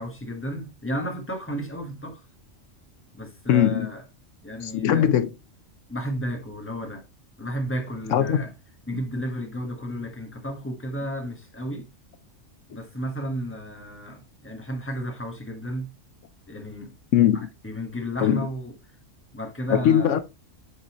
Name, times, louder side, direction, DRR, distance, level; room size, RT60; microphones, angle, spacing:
voice 1, 0.0-2.2 3.1-4.0 4.4-5.1 5.9-7.0 7.4-8.5 8.9-11.9 12.7-15.9 16.5-16.9 17.6-18.7 19.3-20.2, equal, 10° left, 1.4 m, -32 dB
voice 2, 3.5-3.9 4.6-5.3 8.1-8.4 17.1-17.5 18.2-18.5 19.7-20.2, left 10 dB, 75° left, 1.0 m, -20 dB
8.3 x 4.0 x 2.9 m
omnidirectional pair, 1.3 m